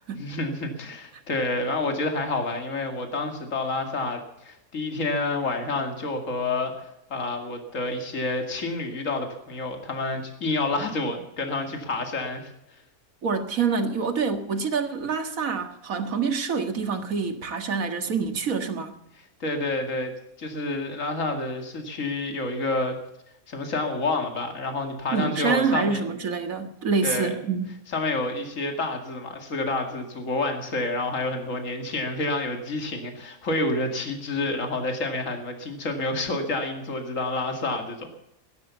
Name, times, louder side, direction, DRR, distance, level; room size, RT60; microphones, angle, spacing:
voice 1, 0.2-12.5 19.4-20.1 20.4-23.0 23.5-26.0 27.0-27.3 27.9-38.1, left 2 dB, 60° left, 4 dB, 2.6 m, -29 dB
voice 2, 13.2-18.9 25.1-27.7, right 5 dB, 65° right, 7 dB, 2.1 m, -26 dB
17.5 x 11.0 x 7.0 m, 0.81 s
omnidirectional pair, 1.5 m